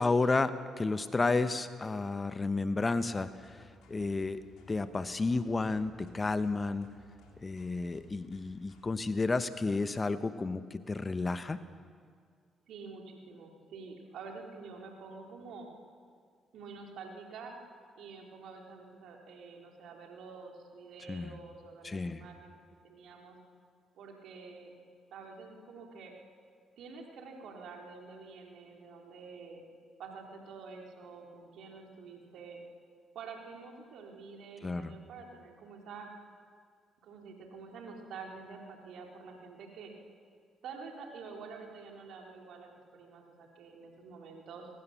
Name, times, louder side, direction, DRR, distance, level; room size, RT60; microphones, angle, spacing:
voice 1, 0.0-4.4 4.7-6.9 7.4-11.6 21.1-21.3 21.8-22.2 34.6-34.9, left 3 dB, 30° left, 12 dB, 1.1 m, -31 dB
sound 1, 3.1-9.0, left 4 dB, 65° left, 3.7 m, -60 dB
voice 2, 12.7-15.7 16.5-17.5 18.0-23.4 23.9-24.7 25.1-26.1 26.8-29.6 30.0-32.6 33.1-36.1 37.0-39.9 40.6-44.7, right 4 dB, 60° right, 1 dB, 3.8 m, -48 dB
22.5 x 20.0 x 6.9 m, 2.1 s
figure-of-eight pair, 40°, 0 cm